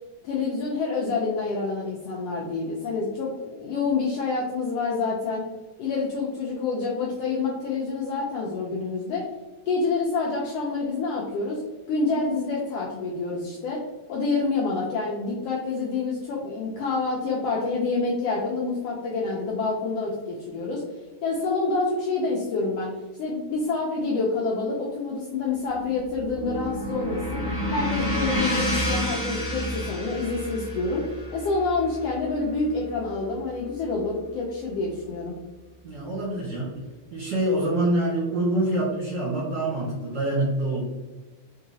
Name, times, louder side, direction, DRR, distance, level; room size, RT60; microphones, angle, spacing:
voice 1, 0.2-5.5 5.8-9.2 9.7-11.6 11.9-13.8 14.1-20.8 21.2-22.9 23.2-27.4 27.7-31.0 31.3-35.3, left 3 dB, 75° left, -3 dB, 1.4 m, -27 dB
sound 1, 25.7-34.0, equal, 30° left, 1.1 m, -30 dB
voice 2, 35.8-36.7 37.1-40.8, right 1 dB, 50° right, -7 dB, 1.5 m, -25 dB
3.9 x 3.8 x 2.7 m, 1.2 s
omnidirectional pair, 3.3 m